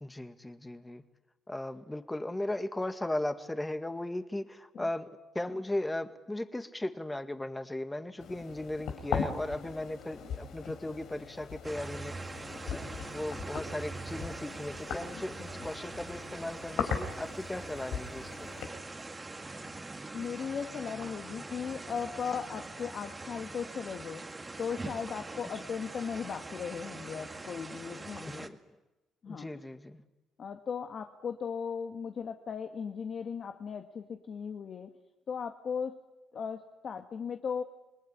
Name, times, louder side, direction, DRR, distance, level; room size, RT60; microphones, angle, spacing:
voice 1, 0.0-1.0 1.5-5.1 5.3-12.2 12.6-18.5 28.1-28.8 29.3-30.0, left 1 dB, 10° left, 8 dB, 2.1 m, -37 dB
sound 1, 8.2-18.7, left 6 dB, 75° left, 4.9 m, -39 dB
sound 2, 11.6-28.5, right 3 dB, 20° right, 2.1 m, -43 dB
voice 2, 20.1-28.5 29.2-29.5 30.4-34.9 35.3-36.0 36.3-37.6, left 6 dB, 50° left, 5 dB, 1.8 m, -37 dB
28.0 x 20.5 x 10.0 m, 1.0 s
cardioid pair, 85°, 0 cm